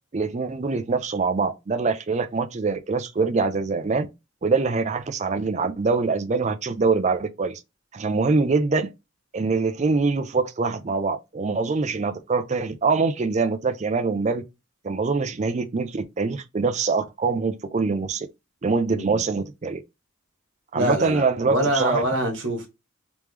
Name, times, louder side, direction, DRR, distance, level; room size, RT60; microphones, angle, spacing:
voice 1, 0.1-4.1 4.4-7.6 7.9-8.9 9.3-14.4 14.8-18.3 18.6-19.8 20.7-22.1, right 4 dB, 35° right, 0.4 m, -24 dB
voice 2, 18.9-19.2 20.7-22.7, right 1 dB, 70° right, 1.5 m, -25 dB
3.5 x 3.1 x 3.2 m
head